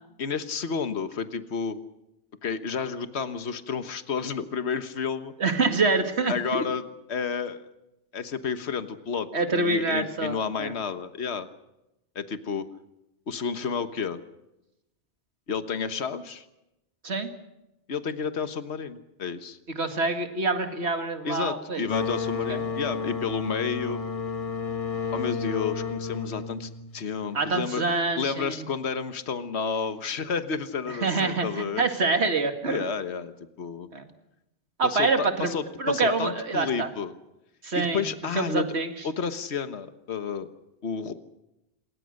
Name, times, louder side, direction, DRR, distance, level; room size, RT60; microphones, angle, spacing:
voice 1, 0.2-1.8 2.4-5.3 6.3-7.6 8.1-11.5 12.1-12.7 13.3-14.2 15.5-16.4 17.9-19.6 21.2-24.0 25.1-27.8 28.2-31.9 32.7-33.3 33.6-33.9 34.8-37.1 37.7-38.6 39.0-40.5 40.8-41.1, left 5 dB, 70° left, 10 dB, 1.5 m, -31 dB
voice 2, 5.4-6.7 9.3-10.7 17.0-17.3 19.8-21.8 22.5-22.6 27.3-28.7 31.0-32.8 33.9-34.0 34.8-36.9 37.6-38.0 38.4-38.9, right 3 dB, 70° right, 7 dB, 2.4 m, -26 dB
sound 1, 21.9-27.3, left 5 dB, 30° left, 1.8 m, -31 dB
27.0 x 22.5 x 6.5 m, 0.92 s
omnidirectional pair, 1.2 m